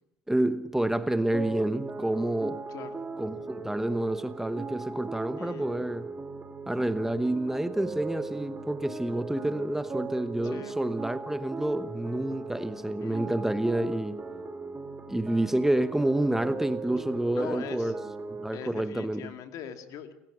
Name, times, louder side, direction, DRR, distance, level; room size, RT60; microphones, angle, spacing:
voice 1, 0.3-2.6 3.2-6.1 6.7-14.2 15.1-17.9 18.3-19.3, right 1 dB, 5° right, 1.0 m, -28 dB
sound 1, 1.3-18.5, right 3 dB, 25° right, 2.6 m, -39 dB
voice 2, 5.4-5.7 10.4-10.8 13.0-13.2 17.3-17.9 18.5-20.1, left 9 dB, 55° left, 2.4 m, -41 dB
28.5 x 15.0 x 6.3 m
supercardioid pair, 90°, 7 cm